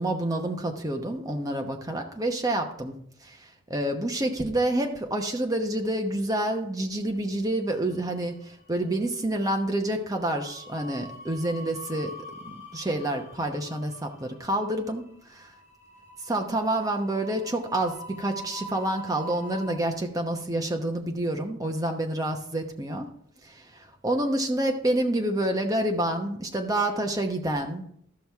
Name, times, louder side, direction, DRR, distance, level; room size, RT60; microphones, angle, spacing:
voice 1, 0.0-3.0 3.2-12.1 12.4-15.5 16.2-23.1 23.4-27.8, right 1 dB, 20° right, 3 dB, 0.9 m, -28 dB
sound 1, 7.7-8.4 8.7-9.0 10.2-19.7, right 1 dB, 45° left, 3.1 m, -44 dB
13.5 x 6.0 x 3.5 m, 0.67 s
head